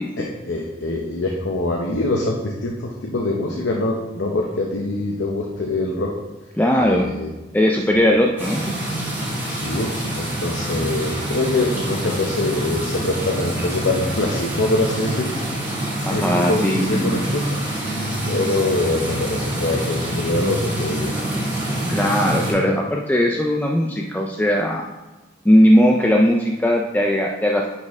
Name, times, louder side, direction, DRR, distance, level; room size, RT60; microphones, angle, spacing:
voice 1, 0.2-6.1 6.8-7.3 7.9-8.0 9.1-15.4 16.1-17.5 18.3-21.1, left 2 dB, 80° left, 0 dB, 0.8 m, -24 dB
voice 2, 6.6-7.1 7.5-8.6 16.0-17.3 21.9-24.9 25.5-27.7, equal, 10° left, 0 dB, 0.4 m, -18 dB
sound 1, 8.4-22.5, right 1 dB, 10° right, 1.9 m, -26 dB
9.8 x 4.4 x 3.5 m, 1.1 s
head